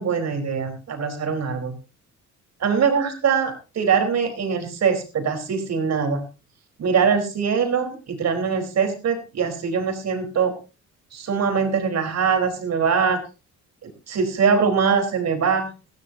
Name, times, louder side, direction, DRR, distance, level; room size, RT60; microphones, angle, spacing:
voice 1, 0.0-1.8 2.6-6.2 6.8-10.6 11.1-13.2 13.8-15.7, right 6 dB, 60° right, 5 dB, 4.5 m, -22 dB
16.5 x 15.5 x 2.9 m, 0.31 s
cardioid pair, 90°, 30 cm